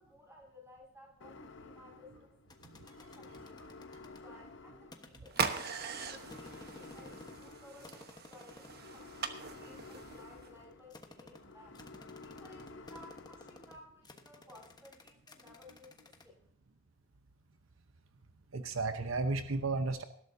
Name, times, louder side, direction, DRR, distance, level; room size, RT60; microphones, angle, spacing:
voice 1, 0.0-2.4 3.0-11.8 12.2-16.1, left 1 dB, 15° right, -1 dB, 6.2 m, -58 dB
sound 1, 1.2-13.8, left 3 dB, 60° left, 0.9 m, -53 dB
sound 2, 2.5-4.2 4.9-7.5 7.8-8.8 9.5-16.3, left 2 dB, 20° left, 1.2 m, -55 dB
voice 2, 2.6-3.1 4.1-4.2 18.5-20.0, right 3 dB, 75° right, 9 dB, 0.9 m, -34 dB
sound 3, 5.3-10.5, right 6 dB, 50° right, 1.1 m, -40 dB
19.5 x 12.5 x 2.7 m, 0.68 s
head